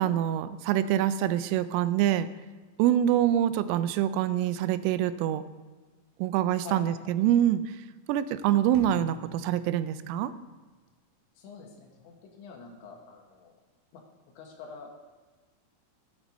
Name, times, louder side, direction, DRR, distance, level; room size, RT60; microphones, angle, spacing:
voice 1, 0.0-2.3 2.8-5.4 6.2-7.8 8.1-10.3, right 11 dB, 85° right, 13 dB, 3.1 m, -25 dB
voice 2, 6.6-7.1 11.4-13.5 13.9-14.0 14.4-14.9, left 5 dB, 70° left, 2 dB, 3.3 m, -46 dB
sound 1, 8.7-10.7, right 2 dB, 70° right, 2.7 m, -49 dB
11.0 x 8.8 x 4.1 m, 1.3 s
omnidirectional pair, 5.7 m